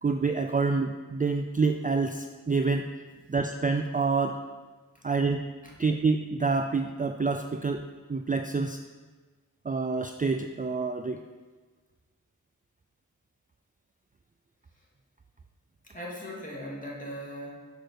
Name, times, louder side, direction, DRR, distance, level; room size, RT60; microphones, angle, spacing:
voice 1, 0.0-2.9 3.3-4.4 5.0-5.5 5.8-7.8 8.1-8.8 9.6-11.2, right 4 dB, 25° right, 6 dB, 0.4 m, -27 dB
voice 2, 15.8-17.7, equal, 25° left, -4 dB, 2.1 m, -39 dB
6.7 x 4.6 x 6.2 m, 1.3 s
wide cardioid pair, 50°, 34 cm